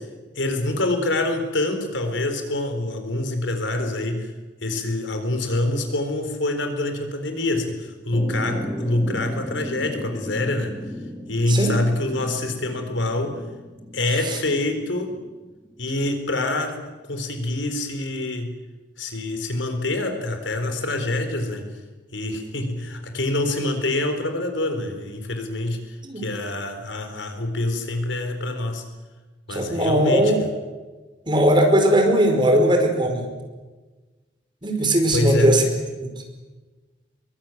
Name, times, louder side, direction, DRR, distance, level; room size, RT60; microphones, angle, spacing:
voice 1, 0.4-4.3 4.6-10.8 11.3-13.4 13.9-15.2 15.8-16.8 17.0-18.6 19.0-21.7 22.1-28.8 29.5-30.3 35.1-35.6, left 2 dB, 80° left, 6 dB, 4.2 m, -26 dB
sound 1, 8.1-15.9, equal, 10° left, 2.1 m, -36 dB
voice 2, 29.5-30.4 31.3-33.2 34.6-35.7 36.0-36.1, right 1 dB, 25° right, 4 dB, 5.0 m, -19 dB
24.0 x 23.0 x 9.2 m, 1.3 s
head